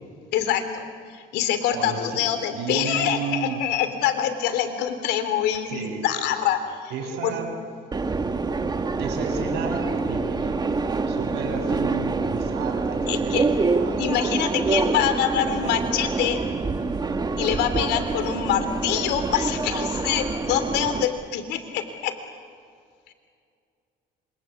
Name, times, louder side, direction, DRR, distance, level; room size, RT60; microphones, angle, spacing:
voice 1, 0.3-0.8 1.1-6.9 7.2-7.3 13.1-13.5 14.0-16.4 17.4-22.1, left 9 dB, 85° left, 9 dB, 3.2 m, -25 dB
voice 2, 1.7-3.6 5.7-6.3 6.9-7.5 9.0-14.0 14.5-14.6, right 5 dB, 80° right, 3 dB, 7.1 m, -33 dB
Subway metro underground, 7.9-21.1, right 3 dB, 25° right, 1.8 m, -26 dB
27.5 x 25.0 x 8.5 m, 2.2 s
cardioid pair, 110°, 17 cm